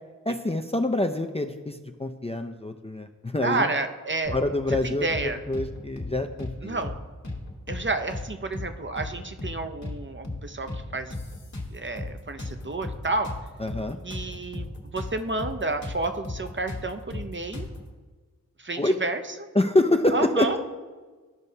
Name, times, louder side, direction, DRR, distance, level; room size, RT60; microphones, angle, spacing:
voice 1, 0.3-3.7 4.3-6.8 13.6-14.0 18.8-19.0 19.5-20.6, left 1 dB, 20° left, 5 dB, 0.4 m, -26 dB
voice 2, 3.4-4.4 4.8-5.4 6.6-6.9 7.7-11.1 11.7-13.3 14.0-17.7 18.6-19.2 20.1-20.6, right 2 dB, 35° right, 7 dB, 0.5 m, -30 dB
sound 1, 4.2-4.8 5.1-5.3 5.5-6.5 6.8-7.0 7.2-8.3 8.5-8.7 9.0-10.0 10.2-10.4 10.7-12.1 12.4-15.1 15.4-15.5 15.8-17.8, left 2 dB, 50° left, 1.4 m, -35 dB
13.5 x 5.4 x 2.7 m, 1.4 s
wide cardioid pair, 65°, 35 cm